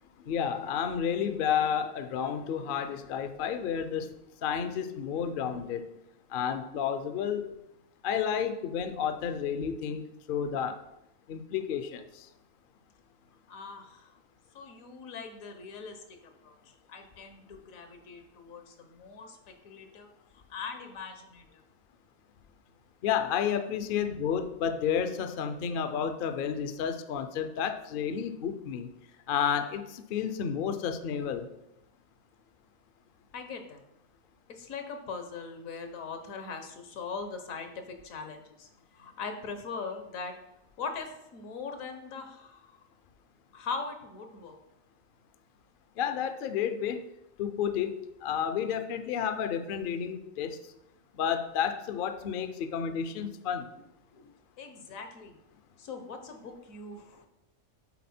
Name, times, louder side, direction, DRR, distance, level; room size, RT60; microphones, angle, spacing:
voice 1, 0.3-4.1 4.4-5.9 6.3-7.5 8.0-10.0 10.3-10.8 11.3-12.3 23.0-28.9 29.3-31.5 46.0-47.0 47.4-50.6 51.2-53.7, left 8 dB, 60° left, 8 dB, 0.5 m, -31 dB
voice 2, 13.5-14.1 14.5-20.1 20.5-21.6 33.3-33.8 34.5-38.7 38.9-40.3 40.8-42.6 43.5-44.6 54.1-55.4 55.8-57.3, left 5 dB, 75° left, 6 dB, 1.3 m, -41 dB
8.4 x 3.9 x 4.2 m, 0.88 s
omnidirectional pair, 1.4 m